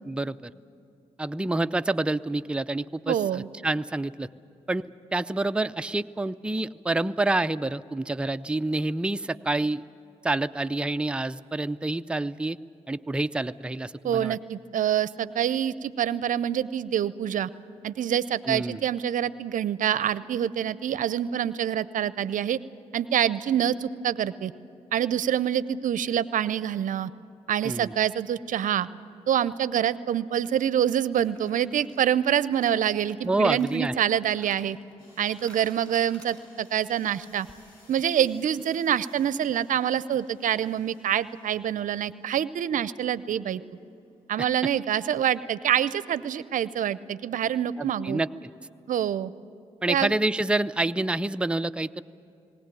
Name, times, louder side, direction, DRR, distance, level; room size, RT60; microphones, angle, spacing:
voice 1, 0.1-0.5 1.2-4.3 4.7-4.8 5.1-9.8 10.2-12.6 12.9-14.4 18.5-18.8 27.6-27.9 33.2-34.0 47.8-48.3 49.8-52.0, right 2 dB, 5° right, 10 dB, 0.5 m, -27 dB
voice 2, 3.1-3.5 14.0-17.5 17.8-22.6 22.9-24.5 24.9-27.1 27.5-28.9 29.3-34.8 35.2-37.5 37.9-43.6 44.3-48.2 48.9-49.3 49.9-50.1, right 10 dB, 65° right, 17 dB, 0.6 m, -26 dB
sound 1, 30.0-30.1 31.2-36.9 37.2-37.3 37.5-37.6, right 1 dB, 10° left, 5.8 m, -55 dB
sound 2, 35.0-43.6, left 1 dB, 85° left, 6.2 m, -60 dB
19.5 x 17.5 x 9.1 m, 2.7 s
hypercardioid pair, 45°, 15 cm